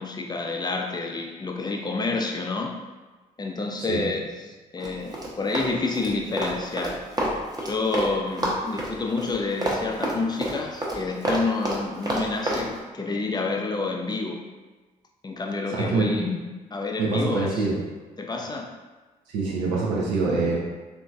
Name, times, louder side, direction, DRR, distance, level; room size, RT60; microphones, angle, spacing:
voice 1, 0.0-2.7 3.4-7.0 7.6-14.4 15.2-16.4 16.7-17.6 18.2-18.7, left 3 dB, 20° left, 1 dB, 0.5 m, -29 dB
Run, 4.8-8.1 8.4-12.6, right 1 dB, 20° right, 0.8 m, -28 dB
voice 2, 15.7-16.1 17.0-17.8 19.3-20.6, right 3 dB, 75° right, -4 dB, 0.6 m, -24 dB
2.9 x 2.6 x 2.3 m, 1.3 s
hypercardioid pair, 40°, 19 cm